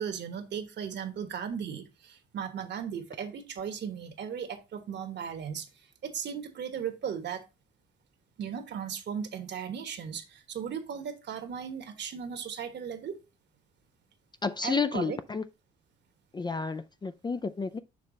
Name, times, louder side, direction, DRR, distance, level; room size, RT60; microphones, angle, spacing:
voice 1, 0.0-5.7 6.0-7.4 8.4-13.2 14.6-15.2, right 7 dB, 60° right, 1.3 m, -36 dB
voice 2, 14.4-15.5 16.3-17.8, left 4 dB, 20° left, 0.4 m, -31 dB
6.5 x 3.3 x 5.1 m
cardioid pair, 90°, 20 cm